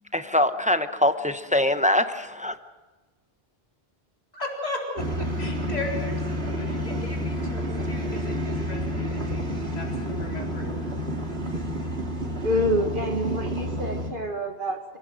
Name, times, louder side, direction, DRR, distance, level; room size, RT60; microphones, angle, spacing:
voice 1, 0.1-2.6, left 1 dB, 10° right, 9 dB, 0.8 m, -23 dB
voice 2, 4.3-10.7, left 2 dB, 40° left, -1 dB, 4.1 m, -36 dB
sound 1, 5.0-14.1, equal, 85° right, 3.0 m, -29 dB
voice 3, 12.4-15.0, equal, 55° right, 3 dB, 2.2 m, -27 dB
28.5 x 17.5 x 6.4 m, 1.3 s
omnidirectional pair, 1.0 m